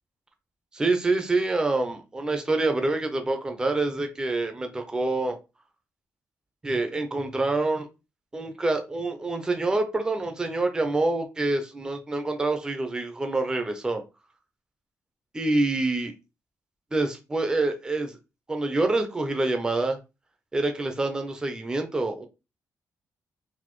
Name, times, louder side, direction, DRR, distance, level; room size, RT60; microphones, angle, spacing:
voice 1, 0.7-5.4 6.6-7.9 8.3-14.0 15.3-16.1 16.9-18.2 18.5-20.0 20.5-22.2, right 2 dB, 10° right, 0.5 m, -26 dB
4.0 x 2.6 x 3.0 m
wide cardioid pair, 170°, 6 cm